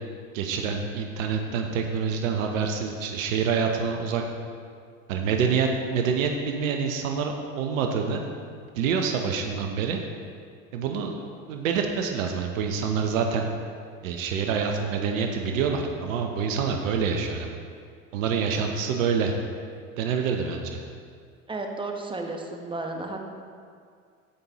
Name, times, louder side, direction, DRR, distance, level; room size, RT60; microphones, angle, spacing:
voice 1, 0.3-4.2 5.1-8.3 8.8-10.0 10.7-11.2 11.5-13.4 14.0-17.5 18.1-19.3 20.0-20.8, right 6 dB, 75° right, 3 dB, 0.9 m, -26 dB
voice 2, 21.5-23.2, right 2 dB, 10° right, 3 dB, 1.1 m, -33 dB
15.5 x 5.4 x 3.0 m, 2.2 s
hypercardioid pair, 85°, 40 cm